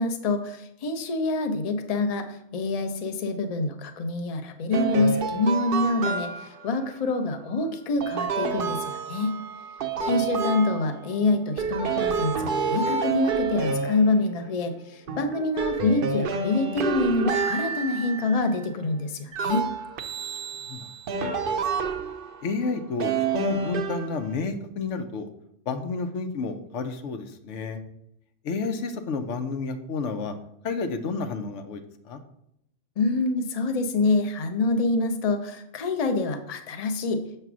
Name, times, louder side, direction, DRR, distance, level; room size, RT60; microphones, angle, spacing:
voice 1, 0.0-9.4 10.0-19.7 33.0-37.2, left 3 dB, 40° left, 6 dB, 0.6 m, -26 dB
sound 1, 4.7-6.7 8.0-11.2 11.6-14.6 15.1-18.6 19.3-22.4 23.0-24.5, right 5 dB, 60° right, 0.7 m, -29 dB
voice 2, 20.3-20.9 22.4-25.3 25.7-27.8 28.4-30.3 30.6-32.2, left 4 dB, 90° left, 7 dB, 1.0 m, -31 dB
6.8 x 3.3 x 6.0 m, 0.76 s
omnidirectional pair, 1.2 m